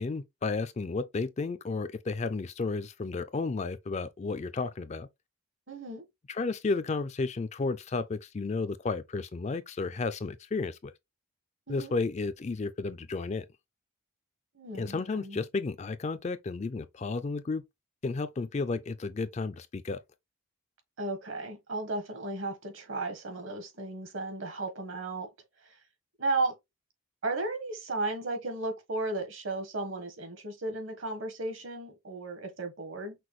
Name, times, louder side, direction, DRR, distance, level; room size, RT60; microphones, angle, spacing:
voice 1, 0.0-5.1 6.3-10.9 11.7-13.5 14.7-17.6 18.0-20.0, left 3 dB, 30° left, 0.3 m, -32 dB
voice 2, 5.7-6.0 11.7-12.0 14.5-15.4 21.0-25.3 25.6-25.8 26.2-26.5 27.2-33.1, right 2 dB, 65° right, 1.4 m, -34 dB
5.9 x 2.2 x 3.1 m
head